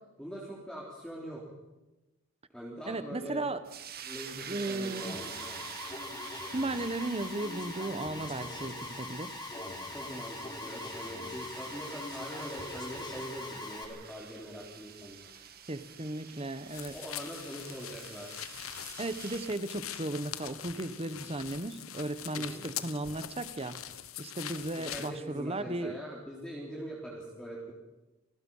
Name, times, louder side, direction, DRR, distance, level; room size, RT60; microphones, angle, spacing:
voice 1, 0.2-1.4 2.5-3.5 4.0-5.6 9.9-15.3 16.9-18.3 22.3-22.6 24.8-27.7, equal, 5° left, -4 dB, 3.8 m, -43 dB
voice 2, 2.9-3.6 4.5-5.2 6.5-9.4 15.7-16.9 19.0-23.8 24.2-26.0, right 2 dB, 30° right, 12 dB, 1.3 m, -35 dB
sound 1, 3.6-19.6, right 8 dB, 50° right, 2.0 m, -47 dB
Alarm, 4.9-13.8, left 2 dB, 20° left, 4.1 m, -42 dB
sound 2, 16.7-25.1, left 11 dB, 85° left, 1.2 m, -43 dB
29.0 x 19.0 x 5.7 m, 1.0 s
head